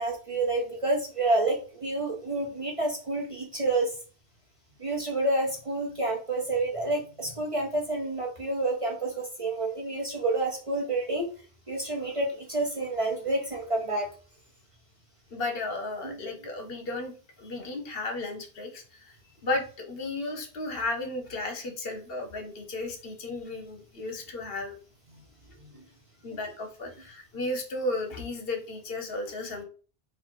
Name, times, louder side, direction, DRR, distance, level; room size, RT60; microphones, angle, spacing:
voice 1, 0.0-3.9 4.8-11.3 11.7-14.1 16.0-16.2 25.6-25.8, right 2 dB, 35° right, 0 dB, 0.8 m, -29 dB
voice 2, 15.3-17.1 17.4-19.2 19.4-24.7 26.2-29.6, left 2 dB, 65° left, 4 dB, 1.1 m, -34 dB
4.1 x 2.6 x 4.5 m, 0.39 s
omnidirectional pair, 1.1 m